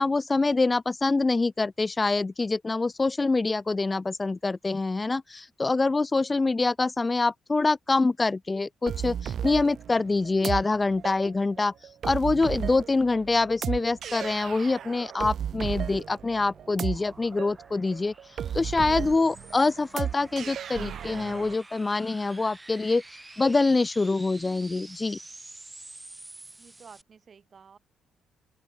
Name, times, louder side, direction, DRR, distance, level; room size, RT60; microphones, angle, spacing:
voice 1, 0.0-11.7 12.0-18.1 18.5-23.0 23.4-25.2, left 3 dB, 25° left, 0.3 m, -25 dB
sound 1, 8.9-21.5, right 9 dB, 60° right, 0.9 m, -35 dB
sound 2, 15.7-27.0, right 2 dB, 15° right, 5.2 m, -49 dB
voice 2, 26.6-27.8, right 6 dB, 45° right, 6.5 m, -51 dB
open air
cardioid pair, 90°, 0 cm